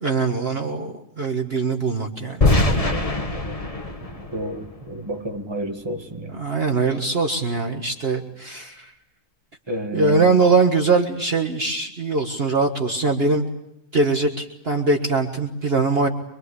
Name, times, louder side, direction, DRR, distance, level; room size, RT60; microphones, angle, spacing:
voice 1, 0.0-2.5 6.3-8.9 9.9-13.5 13.9-16.1, right 3 dB, 45° right, 1.8 m, -22 dB
sound 1, 2.4-5.4, left 2 dB, 25° left, 1.7 m, -23 dB
voice 2, 4.3-6.4 9.7-10.3, right 1 dB, 15° right, 2.2 m, -30 dB
25.0 x 24.0 x 8.2 m
omnidirectional pair, 1.5 m